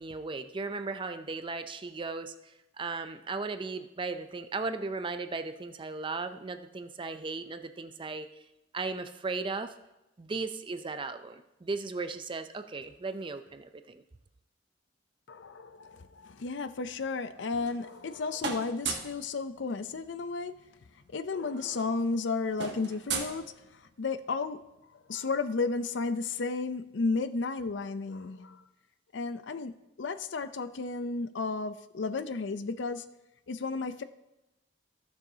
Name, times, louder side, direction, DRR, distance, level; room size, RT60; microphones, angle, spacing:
voice 1, 0.0-8.3 8.7-9.7 10.2-14.0, right 3 dB, 25° right, 0.4 m, -36 dB
voice 2, 15.3-20.5 21.1-24.6 24.9-28.6 29.1-33.1 33.5-34.0, left 4 dB, 65° left, 0.5 m, -33 dB
sound 1, 17.3-18.1 18.4-19.2 20.6-20.7 20.9-21.1 21.4-24.0, right 5 dB, 60° right, 1.2 m, -37 dB
14.5 x 7.0 x 2.8 m
head